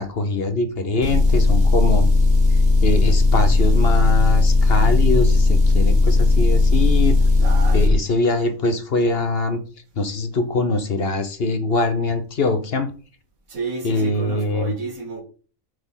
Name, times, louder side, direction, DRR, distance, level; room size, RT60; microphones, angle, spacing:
voice 1, 0.0-2.1 2.8-7.2 7.7-9.6 10.0-12.9 13.8-14.8, left 2 dB, 50° left, 1.0 m, -23 dB
Motor vehicle (road) / Engine, 1.0-7.9, left 2 dB, 40° right, 2.1 m, -16 dB
voice 2, 7.4-7.9 13.5-15.2, right 4 dB, 85° right, 2.2 m, -31 dB
7.8 x 4.3 x 5.5 m
omnidirectional pair, 1.4 m